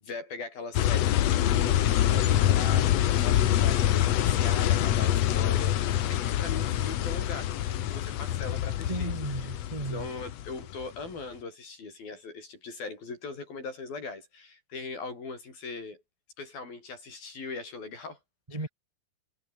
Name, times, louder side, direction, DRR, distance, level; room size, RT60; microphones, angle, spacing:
voice 1, 0.0-9.5 9.9-16.0 16.4-18.2, left 4 dB, 60° left, 9.6 m, -40 dB
sound 1, 0.7-10.9, left 12 dB, 85° left, 1.4 m, -25 dB
voice 2, 8.9-10.1 18.5-18.7, right 2 dB, 40° right, 0.5 m, -34 dB
omnidirectional pair, 4.7 m